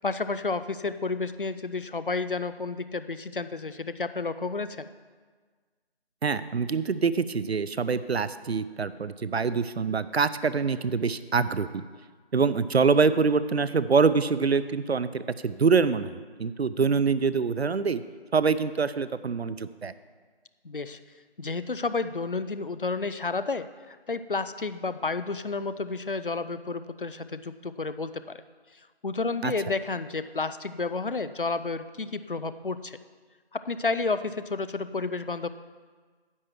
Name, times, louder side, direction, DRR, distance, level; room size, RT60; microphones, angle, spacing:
voice 1, 0.0-4.9 20.6-21.0 21.4-28.4 29.0-33.0 33.5-35.5, left 3 dB, 55° left, 12 dB, 0.4 m, -31 dB
voice 2, 6.2-11.8 12.3-16.1 16.4-18.0 18.3-19.9 29.4-29.5, right 5 dB, 75° right, 15 dB, 0.5 m, -25 dB
9.8 x 4.6 x 7.5 m, 1.5 s
figure-of-eight pair, 175°, 32 cm